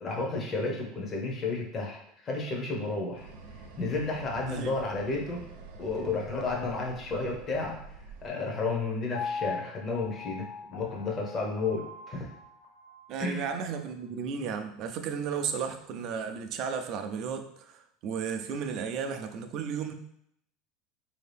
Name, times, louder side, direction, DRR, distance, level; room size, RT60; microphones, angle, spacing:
voice 1, 0.0-3.3 3.8-5.5 5.8-12.3 13.2-13.4, left 3 dB, 25° left, -1 dB, 0.8 m, -32 dB
sound 1, 3.1-8.3, right 3 dB, 90° right, 0.7 m, -47 dB
Piano, 9.1-13.2 13.7-13.8, left 5 dB, 75° left, 0.6 m, -40 dB
voice 2, 13.1-19.9, right 6 dB, 40° right, 7 dB, 0.4 m, -34 dB
4.3 x 2.7 x 3.4 m, 0.72 s
supercardioid pair, 160°, 0 cm